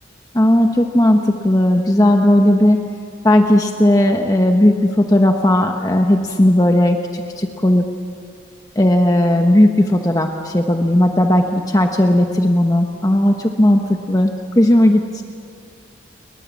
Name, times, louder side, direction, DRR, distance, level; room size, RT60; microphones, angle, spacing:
voice 1, 0.3-2.8 3.2-7.9 8.8-15.2, left 1 dB, 20° left, 4 dB, 1.1 m, -15 dB
29.5 x 21.5 x 7.4 m, 2.4 s
head